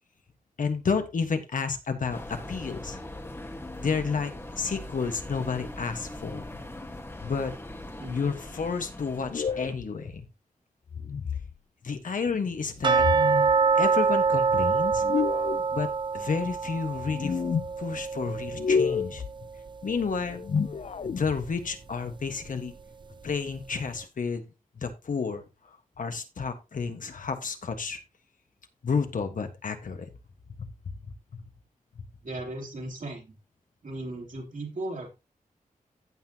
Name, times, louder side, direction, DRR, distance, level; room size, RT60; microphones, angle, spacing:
voice 1, 0.6-3.0 3.8-6.4 7.2-7.5 8.1-10.2 11.8-13.1 13.7-15.0 15.7-17.4 17.8-19.2 19.8-20.4 21.0-22.7 23.2-24.4 24.8-25.4 26.0-28.0 28.8-30.1 30.6-30.7 31.0-31.1 31.9-32.0, left 5 dB, 70° left, 7 dB, 1.5 m, -31 dB
sound 1, 2.1-9.7, left 1 dB, 15° left, 1.3 m, -41 dB
sound 2, 9.2-9.9 10.9-11.5 12.9-13.6 14.9-15.7 16.9-17.7 18.5-19.3 20.3-21.5, left 6 dB, 50° left, 0.4 m, -29 dB
sound 3, 12.8-19.7 20.0-20.1 20.6-20.7 21.2-21.3, right 5 dB, 35° right, 0.4 m, -25 dB
voice 2, 32.2-33.4 33.8-35.1, right 2 dB, 65° right, 0 dB, 3.5 m, -37 dB
15.5 x 5.9 x 2.9 m, 0.26 s
wide cardioid pair, 125°, 14 cm